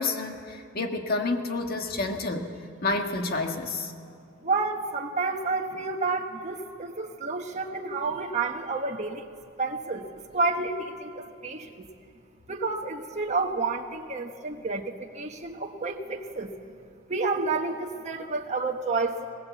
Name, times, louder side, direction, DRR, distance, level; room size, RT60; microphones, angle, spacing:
voice 1, 0.0-2.5 2.8-3.9, left 3 dB, 50° left, 4 dB, 1.6 m, -29 dB
voice 2, 4.4-9.3 9.6-11.9 12.5-16.5 17.1-19.3, right 3 dB, 35° right, 2 dB, 1.2 m, -30 dB
21.0 x 19.5 x 8.2 m, 2.3 s
head